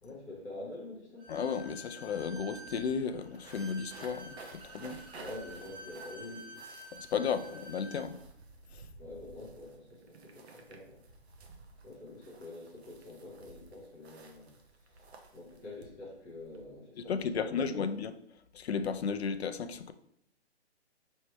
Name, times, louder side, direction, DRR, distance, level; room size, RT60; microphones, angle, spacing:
voice 1, 0.0-1.3 5.1-6.6 9.0-11.0 11.8-14.5 14.9-15.1 15.3-17.9, left 2 dB, 15° left, 0.9 m, -46 dB
Bowed string instrument, 1.2-8.1, right 1 dB, 20° right, 0.7 m, -50 dB
voice 2, 1.3-5.0 6.9-8.2 8.7-8.8 17.0-18.1 18.5-19.9, left 6 dB, 70° left, 0.5 m, -34 dB
sound 1, 2.2-16.6, right 3 dB, 70° right, 0.8 m, -54 dB
3.2 x 3.2 x 4.3 m
hypercardioid pair, 160°, 33 cm